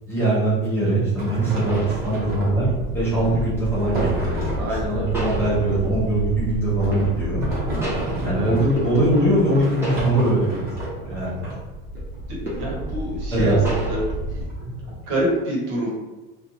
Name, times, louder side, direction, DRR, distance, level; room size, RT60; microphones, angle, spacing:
voice 1, 0.1-4.3 4.9-7.4 8.2-10.7 11.1-11.6 13.3-13.6, right 1 dB, 10° left, -10 dB, 0.8 m, -22 dB
sound 1, 1.1-1.2 1.7-2.6 3.9-4.4 5.1-6.0 6.9-7.5 7.8-9.5 9.8-10.6 11.0-11.1 12.4-12.9 13.6-14.1, right 1 dB, 10° right, 0.4 m, -32 dB
sound 2, 1.2-12.2 13.0-15.4, right 1 dB, 30° right, 1.0 m, -32 dB
sound 3, 1.6-14.5, equal, 55° left, 0.6 m, -32 dB
voice 2, 4.5-5.1 8.3-8.5 12.4-13.6 13.9-14.0 14.3-14.4 15.1-15.9, right 1 dB, 65° right, -3 dB, 1.1 m, -26 dB
2.5 x 2.3 x 2.8 m, 1.2 s
cardioid pair, 175°, 30 cm